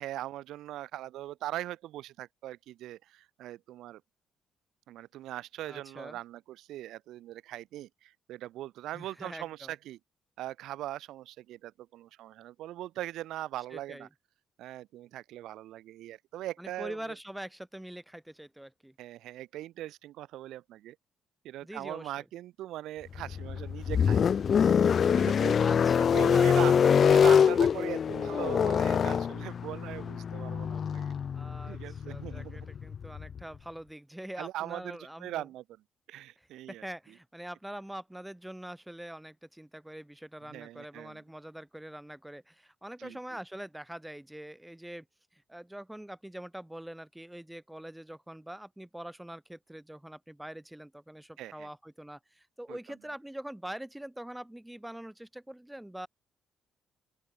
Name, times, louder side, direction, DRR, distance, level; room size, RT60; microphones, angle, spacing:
voice 1, 0.0-4.0 4.9-10.0 10.4-14.1 14.6-17.0 19.0-21.0 21.4-24.4 25.1-25.6 26.0-31.1 31.7-32.7 34.4-35.6 36.1-36.8 40.5-41.2 43.0-43.2 51.4-51.7 52.7-52.8, right 14 dB, 75° right, 2.4 m, -40 dB
voice 2, 5.6-6.2 8.9-9.7 13.7-14.1 16.6-18.9 21.6-22.1 25.6-26.6 31.3-35.5 36.4-45.0 45.3-56.1, right 1 dB, 5° right, 4.6 m, -44 dB
sound 1, 23.1-33.4, left 7 dB, 50° left, 1.7 m, -25 dB
open air
supercardioid pair, 65°, 0 cm